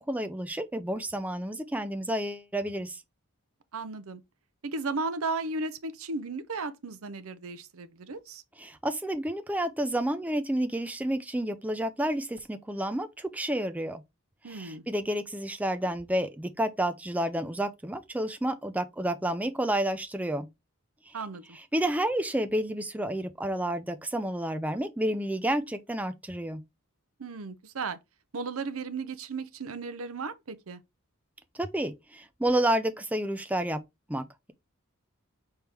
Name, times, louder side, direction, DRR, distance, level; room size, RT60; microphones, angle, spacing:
voice 1, 0.0-3.0 8.6-14.0 14.5-20.5 21.1-21.2 21.5-26.6 31.5-33.8 34.1-34.5, right 1 dB, 5° right, 0.4 m, -30 dB
voice 2, 3.7-4.2 4.6-8.4 14.4-14.8 21.1-21.4 27.2-28.0 28.3-30.8, right 3 dB, 70° right, 0.7 m, -35 dB
4.5 x 3.5 x 3.3 m
head